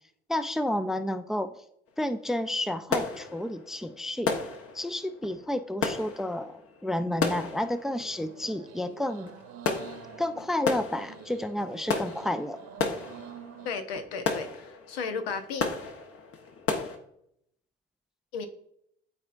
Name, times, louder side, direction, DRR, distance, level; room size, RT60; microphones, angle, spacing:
voice 1, 0.3-1.5 2.0-4.3 4.7-9.3 10.2-12.6, left 1 dB, ahead, 12 dB, 0.4 m, -31 dB
sound 1, 1.9-2.0 2.4-17.0, left 4 dB, 50° left, 1.1 m, -34 dB
sound 2, 8.0-13.7, right 8 dB, 60° right, 1.0 m, -47 dB
voice 2, 13.6-15.6 18.3-18.5, left 5 dB, 80° left, 7 dB, 0.9 m, -34 dB
12.5 x 4.3 x 2.6 m, 0.73 s
hypercardioid pair, 55°, 30 cm